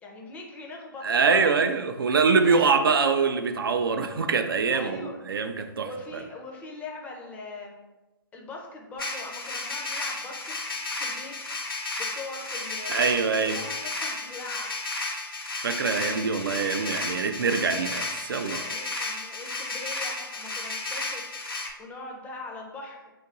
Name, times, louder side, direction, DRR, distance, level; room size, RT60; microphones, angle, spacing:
voice 1, 0.0-1.5 2.4-2.9 4.7-5.3 5.5-7.8 8.3-11.4 12.0-14.8 18.6-21.2 21.8-23.0, left 3 dB, 10° left, 0 dB, 0.4 m, -41 dB
voice 2, 1.0-6.2 12.9-13.6 15.6-18.6, right 5 dB, 70° right, 6 dB, 0.4 m, -24 dB
sound 1, 9.0-21.7, left 3 dB, 80° left, 0.6 m, -33 dB
2.8 x 2.5 x 3.9 m, 1.1 s
figure-of-eight pair, 125°, 12 cm